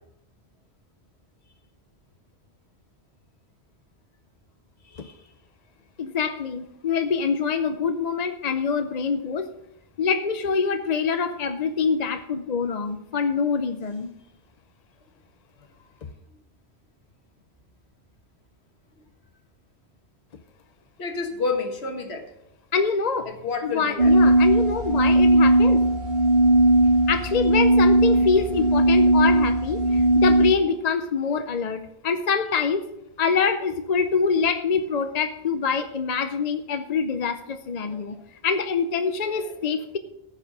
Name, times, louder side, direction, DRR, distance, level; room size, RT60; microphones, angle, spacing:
voice 1, 6.0-9.5 10.0-14.1 22.7-23.3 23.6-25.8 27.1-32.9 33.2-38.2 38.4-40.0, left 5 dB, 45° left, 8 dB, 0.7 m, -25 dB
voice 2, 21.0-22.3 23.3-24.3 28.1-28.4 37.9-38.1, left 4 dB, 75° left, 5 dB, 1.7 m, -30 dB
sound 1, 24.0-30.5, right 1 dB, 55° right, 2.8 m, -18 dB
14.5 x 5.8 x 6.1 m, 0.83 s
omnidirectional pair, 1.1 m